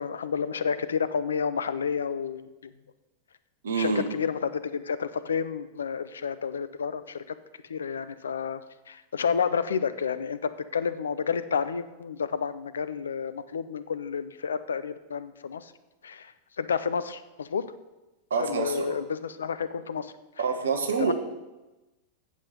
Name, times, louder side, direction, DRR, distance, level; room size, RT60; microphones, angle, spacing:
voice 1, 0.0-2.7 3.7-7.3 7.7-15.7 16.0-16.3 16.6-17.7 18.4-20.1 21.0-21.1, left 6 dB, 70° left, 13 dB, 0.5 m, -30 dB
voice 2, 3.6-4.0 18.3-19.0 20.4-21.1, right 5 dB, 65° right, 5 dB, 1.3 m, -27 dB
8.3 x 7.4 x 6.6 m, 1.1 s
figure-of-eight pair, 90°, 0 cm